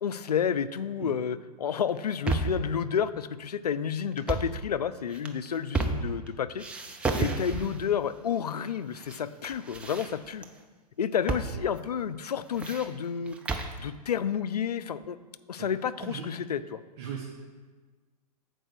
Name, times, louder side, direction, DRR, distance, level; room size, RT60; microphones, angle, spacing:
voice 1, 0.0-6.6 7.2-10.4 11.0-13.4 13.8-15.2 15.5-16.8, left 7 dB, 70° left, 14 dB, 0.4 m, -30 dB
sound 1, 1.9-2.7 4.1-4.6 5.1-6.3 6.6-7.9 8.6-9.2 9.4-10.5 11.3-11.5 11.8-11.9 12.3-13.8, right 3 dB, 5° right, 0.3 m, -32 dB
voice 2, 16.0-16.5 17.0-17.2, right 7 dB, 40° right, 0 dB, 1.0 m, -38 dB
7.7 x 4.7 x 6.1 m, 1.4 s
figure-of-eight pair, 110°, 21 cm